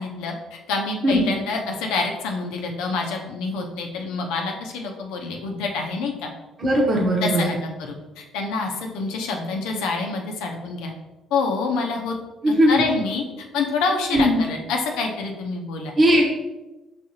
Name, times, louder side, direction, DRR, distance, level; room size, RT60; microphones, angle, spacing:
voice 1, 0.0-6.3 7.2-10.9 11.3-12.1 12.5-13.2 13.5-15.9, left 4 dB, 80° left, 2 dB, 0.6 m, -27 dB
voice 2, 6.6-7.4 12.4-12.8 14.1-14.4 16.0-16.3, equal, 40° right, -2 dB, 1.0 m, -18 dB
5.0 x 3.4 x 2.8 m, 1.1 s
hypercardioid pair, 60°, 0 cm